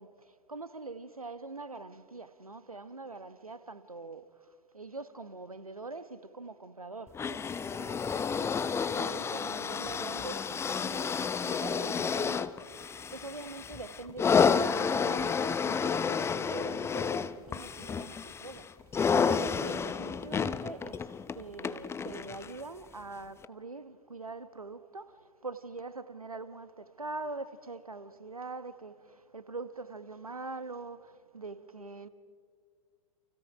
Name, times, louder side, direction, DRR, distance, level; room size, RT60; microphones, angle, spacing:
voice 1, 0.0-32.1, right 3 dB, 90° right, 1.2 m, -44 dB
sound 1, 7.1-22.6 23.4-23.5, left 6 dB, 15° left, 0.7 m, -30 dB
29.5 x 28.5 x 4.9 m
figure-of-eight pair, 100°, 18 cm